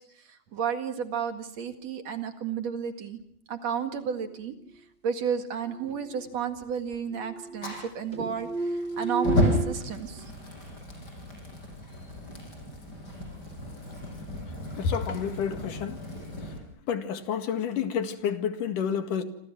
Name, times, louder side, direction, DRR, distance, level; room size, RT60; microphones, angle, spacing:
voice 1, 0.2-3.2 3.5-4.6 5.0-10.3, right 7 dB, 55° right, 3.0 m, -32 dB
sound 1, 5.7-6.6 6.9-7.9 8.1-9.7, right 2 dB, 25° right, 2.0 m, -33 dB
Fire, 7.6-16.6, left 1 dB, 30° left, 6.9 m, -33 dB
voice 2, 14.7-16.0 16.9-19.2, left 7 dB, 85° left, 3.5 m, -29 dB
28.0 x 26.5 x 6.1 m
omnidirectional pair, 3.7 m